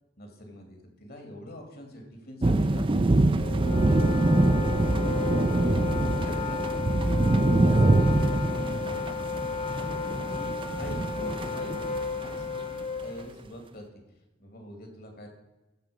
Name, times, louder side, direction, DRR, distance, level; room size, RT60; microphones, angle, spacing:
voice 1, 0.2-4.9 6.1-6.6 7.4-9.0 10.1-11.8 12.1-13.9 14.4-15.3, left 1 dB, 55° left, 3 dB, 2.4 m, -44 dB
sound 1, 2.4-12.5, right 2 dB, 25° right, 0.5 m, -25 dB
Wind instrument woodwind instrument, 3.4-13.3, left 5 dB, 30° left, 0.7 m, -33 dB
15.0 x 6.0 x 5.1 m, 1.1 s
head